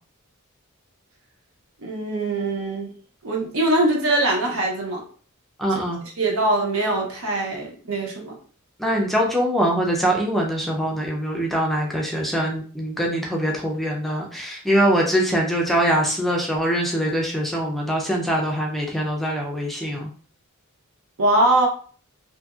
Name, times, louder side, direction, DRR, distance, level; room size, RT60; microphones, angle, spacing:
voice 1, 1.8-2.9 3.2-5.0 6.2-8.4 21.2-21.7, right 2 dB, 65° right, 0 dB, 0.6 m, -22 dB
voice 2, 5.6-6.0 8.8-20.1, right 1 dB, ahead, -2 dB, 0.4 m, -23 dB
2.7 x 2.6 x 2.3 m, 0.43 s
head